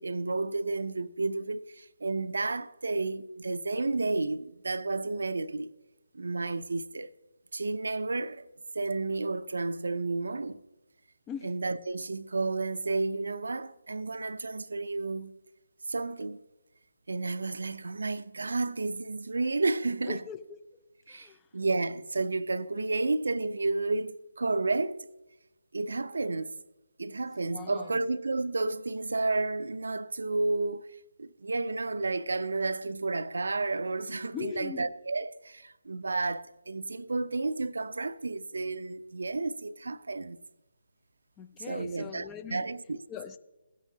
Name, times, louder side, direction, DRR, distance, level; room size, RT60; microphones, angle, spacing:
voice 1, 0.0-5.7 6.1-7.1 7.5-8.4 8.7-10.6 11.4-15.4 15.9-16.4 17.1-20.2 21.1-25.1 25.7-26.6 27.0-30.9 31.2-40.4 41.7-42.3 42.5-43.0, right 3 dB, 70° right, 0.5 m, -31 dB
voice 2, 20.1-20.6 21.1-21.5 27.4-28.0 34.3-34.9 41.4-42.7 43.1-43.4, left 7 dB, 15° left, 0.5 m, -41 dB
16.0 x 9.2 x 2.8 m
figure-of-eight pair, 150°, 0 cm